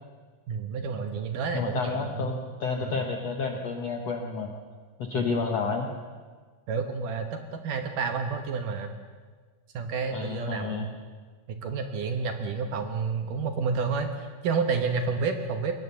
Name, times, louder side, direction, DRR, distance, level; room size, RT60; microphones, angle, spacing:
voice 1, 0.5-2.3 2.8-3.0 5.1-5.3 6.7-8.9 9.7-10.9 11.6-15.8, right 5 dB, 65° right, 6 dB, 2.3 m, -30 dB
voice 2, 1.5-4.5 5.0-5.9 10.1-10.9, left 4 dB, 65° left, 3 dB, 1.6 m, -30 dB
22.0 x 19.5 x 7.0 m, 1.5 s
omnidirectional pair, 4.8 m